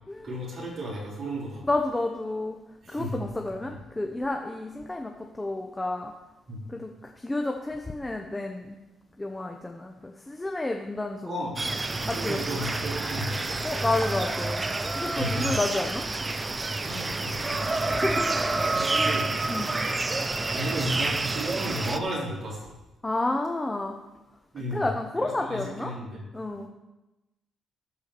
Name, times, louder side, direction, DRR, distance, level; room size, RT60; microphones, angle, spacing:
voice 1, 0.2-1.6 2.8-3.2 3.7-3.8 6.5-6.6 11.3-11.6 12.0-13.6 15.2-15.6 16.8-17.7 18.7-19.6 20.5-22.7 24.5-24.9 25.2-26.3, right 1 dB, 55° right, -5 dB, 4.4 m, -34 dB
voice 2, 1.6-2.6 2.9-6.1 6.7-8.8 9.2-11.3 12.1-12.6 13.6-14.6 14.9-16.0 17.9-19.1 19.5-19.7 23.0-24.0 24.7-25.9 26.3-26.7, left 2 dB, 15° left, 2 dB, 1.0 m, -30 dB
sound 1, 11.6-22.0, right 2 dB, 25° right, 0.7 m, -28 dB
14.0 x 4.9 x 6.8 m, 1.0 s
cardioid pair, 90°, 0 cm